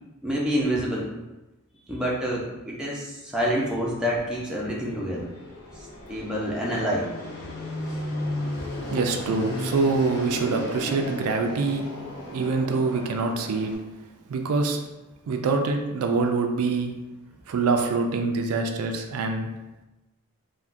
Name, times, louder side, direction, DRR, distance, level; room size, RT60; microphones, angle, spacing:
voice 1, 0.2-1.2 1.9-5.3 5.8-7.1, equal, 5° right, -5 dB, 0.5 m, -27 dB
Fixed-wing aircraft airplane, 3.5-13.8, left 1 dB, 90° left, 0.8 m, -35 dB
voice 2, 8.9-11.9 12.3-13.7 14.3-14.8 15.3-16.9 17.5-19.5, right 4 dB, 80° right, 4 dB, 0.3 m, -25 dB
3.4 x 2.1 x 2.5 m, 1.0 s
head